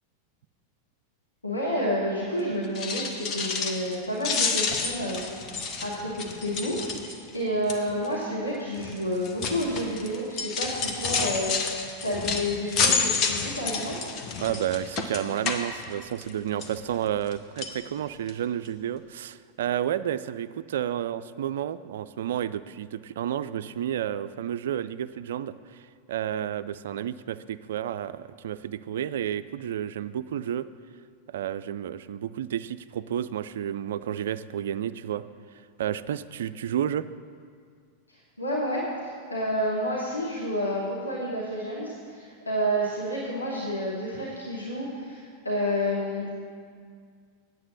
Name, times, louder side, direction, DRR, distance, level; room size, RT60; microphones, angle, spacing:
voice 1, 1.4-5.2 5.8-11.8 12.0-14.1 38.1-46.4, equal, 80° left, -5 dB, 1.5 m, -30 dB
sound 1, 2.6-3.9 4.2-7.3 7.7-8.0 8.8-16.3 16.6-17.3 17.6-17.8 18.3-18.4 18.6-18.7, left 5 dB, 35° left, 1.0 m, -29 dB
voice 2, 14.4-25.8 26.1-30.7 31.3-35.2 35.8-37.1, right 10 dB, 60° right, 14 dB, 0.3 m, -31 dB
9.4 x 7.8 x 6.4 m, 2.1 s
figure-of-eight pair, 90°, 0 cm